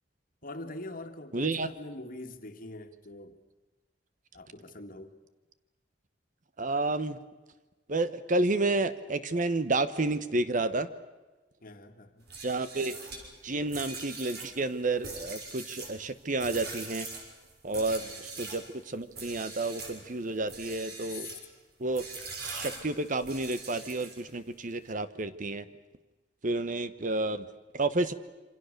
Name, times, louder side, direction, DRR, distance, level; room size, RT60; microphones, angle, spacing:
voice 1, 0.4-3.4 4.3-5.2 11.6-12.2 18.0-18.2 21.1-21.4, left 2 dB, 50° left, 1.9 m, -43 dB
voice 2, 1.3-1.7 6.6-7.2 7.9-10.9 12.4-13.0 13.4-17.1 17.6-21.3 21.8-22.1 22.4-25.7 26.4-27.5 27.7-28.1, right 2 dB, 45° right, 1.1 m, -30 dB
sound 1, 12.2-18.7 19.1-20.0 20.4-21.4 21.9-24.4, right 3 dB, 60° right, 6.1 m, -42 dB
27.5 x 25.5 x 6.7 m
head